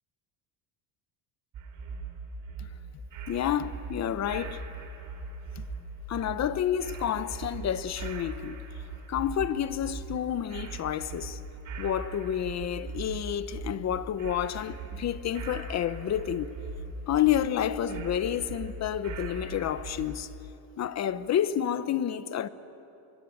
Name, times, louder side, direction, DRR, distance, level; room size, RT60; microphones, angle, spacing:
sound 1, 1.5-20.2, right 3 dB, 40° right, 4.8 m, -40 dB
voice 1, 3.3-4.6 5.6-5.7 6.1-8.6 9.1-11.4 11.8-16.5 17.1-20.3 20.8-22.5, left 10 dB, 35° left, 1.0 m, -29 dB
26.0 x 23.0 x 9.2 m
cardioid pair, 155°, 48 cm